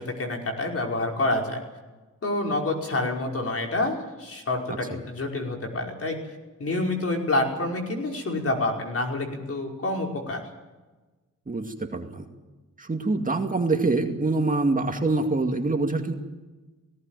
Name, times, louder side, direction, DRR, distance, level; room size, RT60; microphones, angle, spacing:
voice 1, 0.0-1.6 2.2-6.2 6.6-10.4, left 2 dB, 45° left, 1 dB, 5.3 m, -28 dB
voice 2, 11.5-12.2 12.8-16.1, right 3 dB, 25° right, 4 dB, 2.3 m, -25 dB
18.5 x 17.5 x 9.2 m, 1.2 s
cardioid pair, 90°, 31 cm